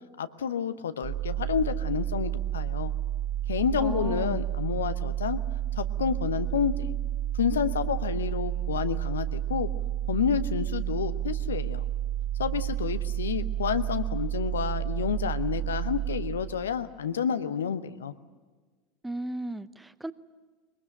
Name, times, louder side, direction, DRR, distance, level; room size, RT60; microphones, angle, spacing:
voice 1, 0.2-2.9 3.5-5.4 5.8-6.9 7.3-9.7 10.1-11.8 12.4-18.1, left 7 dB, 70° left, 12 dB, 0.9 m, -29 dB
sound 1, 1.0-16.8, right 12 dB, 45° right, 5.2 m, -31 dB
voice 2, 3.8-4.4 19.0-20.1, right 1 dB, 5° right, 15 dB, 0.8 m, -36 dB
22.0 x 21.5 x 8.9 m, 1.4 s
figure-of-eight pair, 75°, 0 cm